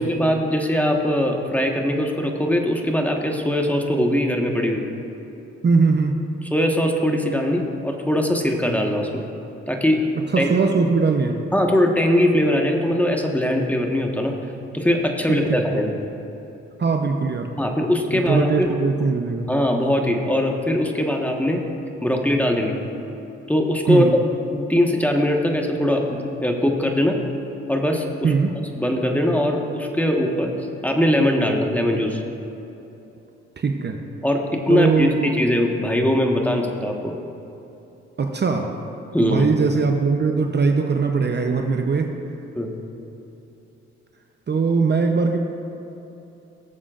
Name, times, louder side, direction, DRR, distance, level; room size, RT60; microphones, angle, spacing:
voice 1, 0.0-4.8 6.5-9.2 9.7-10.0 10.4-10.5 11.5-14.3 14.7-15.9 17.6-18.7 19.5-21.6 22.0-22.8 23.5-24.1 24.5-27.2 27.7-28.3 28.8-30.5 30.8-32.2 34.2-37.1 39.1-39.5 42.5-42.7, left 1 dB, 5° left, 1 dB, 1.4 m, -21 dB
voice 2, 5.6-6.2 10.3-11.4 15.3-15.8 16.8-17.5 18.1-19.5 23.9-24.1 28.2-28.5 33.6-34.0 34.7-35.3 38.2-38.7 39.2-42.1 44.5-45.4, right 4 dB, 35° right, 3 dB, 0.8 m, -20 dB
18.5 x 7.2 x 2.5 m, 3.0 s
hypercardioid pair, 50°, 29 cm